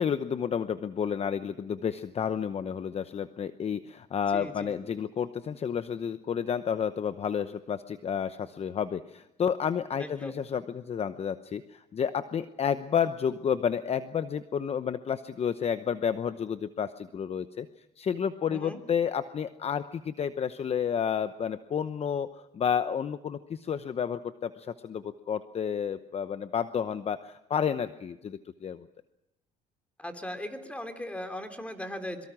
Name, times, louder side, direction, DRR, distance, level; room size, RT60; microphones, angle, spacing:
voice 1, 0.0-17.7 18.0-28.9, left 7 dB, 35° left, 11 dB, 0.9 m, -31 dB
voice 2, 4.3-4.8 10.0-10.4 18.5-18.8 30.0-32.3, left 1 dB, 5° left, 7 dB, 3.4 m, -38 dB
25.5 x 23.5 x 6.1 m, 0.88 s
cardioid pair, 110°, 17 cm